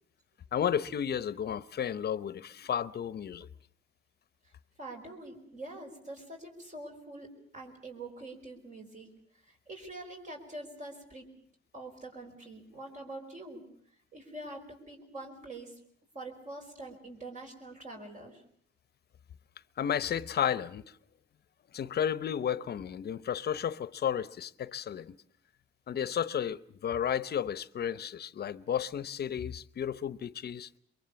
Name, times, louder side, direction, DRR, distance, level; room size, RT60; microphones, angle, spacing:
voice 1, 0.5-3.5 19.8-20.9 21.7-25.2 25.9-30.7, left 9 dB, 55° left, 0.9 m, -33 dB
voice 2, 4.8-9.1 9.4-11.3 11.7-13.6 14.1-15.8 16.1-18.4, right 2 dB, 40° right, 5.1 m, -45 dB
23.5 x 23.0 x 7.0 m
cardioid pair, 90°, 20 cm